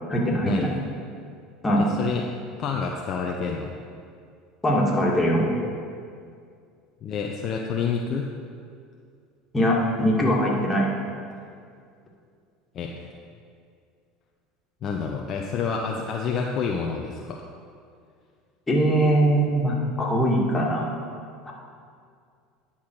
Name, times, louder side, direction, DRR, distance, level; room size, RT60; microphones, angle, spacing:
voice 1, 0.1-0.7 1.6-1.8 4.6-5.4 9.5-10.9 18.7-21.0 21.5-21.6, equal, 20° left, -3 dB, 2.2 m, -22 dB
voice 2, 1.8-2.3 2.6-3.7 7.0-8.3 12.7-13.1 14.8-17.4, left 5 dB, 45° left, 1 dB, 0.7 m, -28 dB
10.5 x 5.7 x 4.7 m, 2.3 s
hypercardioid pair, 75°, 0 cm